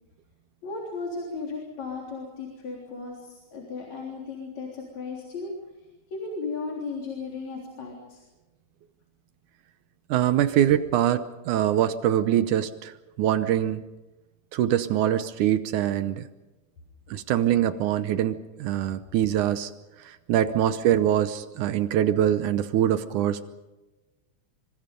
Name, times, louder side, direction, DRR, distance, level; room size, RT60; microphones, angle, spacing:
voice 1, 0.6-5.5 6.1-8.2, left 4 dB, 60° left, -1 dB, 4.8 m, -35 dB
voice 2, 10.1-13.8 14.5-16.3 17.1-19.7 20.0-23.5, right 11 dB, 75° right, 12 dB, 2.3 m, -24 dB
26.0 x 25.5 x 5.3 m, 1.1 s
omnidirectional pair, 3.6 m